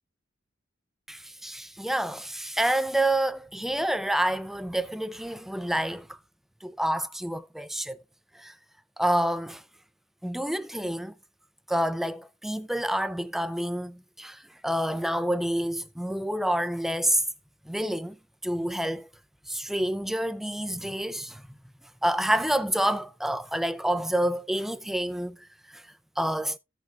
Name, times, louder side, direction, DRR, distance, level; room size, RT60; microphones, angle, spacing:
voice 1, 1.1-6.2 6.6-8.0 8.3-8.5 9.0-9.6 10.2-11.1 11.7-17.2 17.7-18.2 18.4-19.1 19.5-21.4 22.0-25.8 26.2-26.6, right 1 dB, ahead, 0.4 m, -28 dB
15.0 x 6.2 x 2.4 m
head